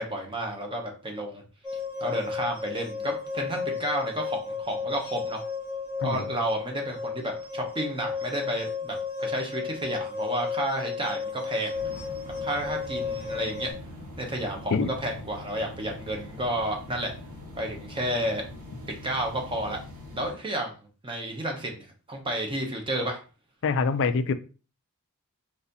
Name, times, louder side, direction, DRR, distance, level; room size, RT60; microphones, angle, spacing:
voice 1, 0.0-1.4 2.0-5.4 6.0-11.8 12.2-13.7 14.2-17.1 17.6-18.4 18.9-19.8 20.1-20.7 21.0-23.2, right 1 dB, 25° right, 2 dB, 0.9 m, -31 dB
sound 1, 1.6-13.7, left 5 dB, 5° right, 1.3 m, -34 dB
sound 2, 11.7-20.3, left 2 dB, 85° right, 1.4 m, -43 dB
voice 2, 23.6-24.3, left 4 dB, 55° left, 12 dB, 0.4 m, -25 dB
4.1 x 2.6 x 4.0 m, 0.35 s
head